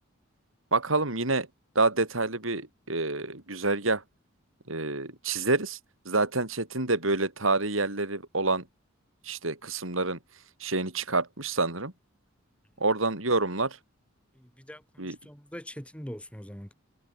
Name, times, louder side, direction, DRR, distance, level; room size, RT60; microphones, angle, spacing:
voice 1, 0.7-1.5 1.7-4.0 4.7-5.8 6.0-8.6 9.3-10.2 10.6-11.9 12.8-13.8 15.0-15.2, right 3 dB, 80° right, 4.9 m, -27 dB
voice 2, 14.3-16.7, equal, 5° left, 6.3 m, -43 dB
head